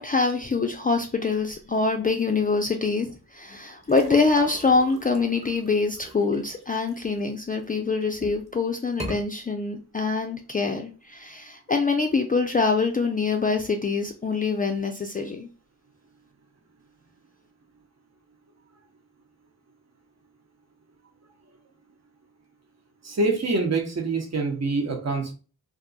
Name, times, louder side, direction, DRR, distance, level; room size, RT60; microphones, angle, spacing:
voice 1, 0.0-15.5, left 4 dB, 25° left, 4 dB, 0.4 m, -25 dB
sound 1, 3.8-7.6 8.1-8.5 8.9-9.2, right 1 dB, 15° right, 1.2 m, -40 dB
voice 2, 23.0-25.3, right 3 dB, 45° right, 3 dB, 1.0 m, -25 dB
2.4 x 2.2 x 3.8 m, 0.35 s
cardioid pair, 60°, 36 cm